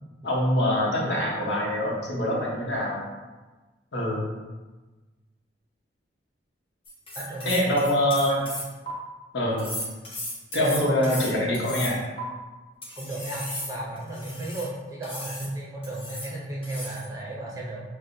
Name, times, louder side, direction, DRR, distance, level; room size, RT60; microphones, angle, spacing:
voice 1, 0.2-3.0 3.9-4.2 7.4-8.4 9.3-9.7 10.5-12.0, left 1 dB, 70° left, -4 dB, 1.0 m, -24 dB
sound 1, 6.8-8.9 9.6-12.2 12.8-14.7 15.0-15.5 15.8-16.3 16.6-17.1, left 1 dB, 30° left, 0.8 m, -36 dB
voice 2, 7.1-7.9 13.0-17.8, right 1 dB, 20° right, -5 dB, 0.6 m, -34 dB
6.0 x 2.2 x 2.6 m, 1.2 s
head